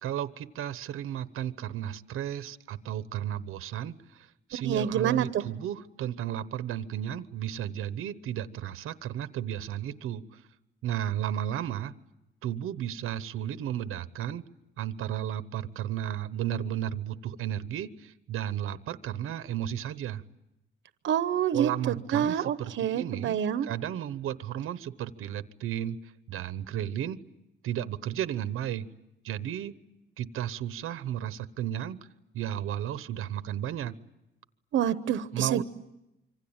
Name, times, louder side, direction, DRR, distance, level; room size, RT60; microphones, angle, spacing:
voice 1, 0.0-10.4 10.8-11.9 12.4-14.4 14.8-20.2 21.5-26.0 26.3-27.2 27.6-28.9 29.2-29.7 30.2-32.0 32.3-33.9 35.3-35.6, right 11 dB, 85° right, 14 dB, 1.0 m, -33 dB
voice 2, 4.6-5.4 21.0-21.7 22.1-23.7 34.7-35.6, right 9 dB, 65° right, 12 dB, 0.9 m, -27 dB
26.5 x 25.0 x 8.9 m, 0.92 s
cardioid pair, 165°, 21 cm